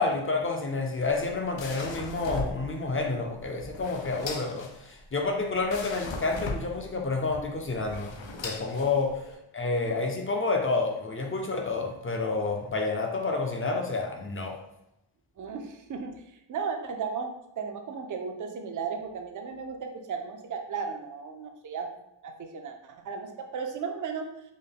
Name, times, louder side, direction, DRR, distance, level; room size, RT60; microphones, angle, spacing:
voice 1, 0.0-8.1 8.4-9.2 9.5-14.6, left 3 dB, 25° left, 2 dB, 0.5 m, -29 dB
sound 1, 1.0-9.3, left 3 dB, 70° left, 0.6 m, -39 dB
voice 2, 15.4-16.1 16.5-21.9 22.2-24.3, right 5 dB, 45° right, 4 dB, 0.5 m, -35 dB
3.7 x 2.1 x 3.6 m, 0.84 s
wide cardioid pair, 125°, 48 cm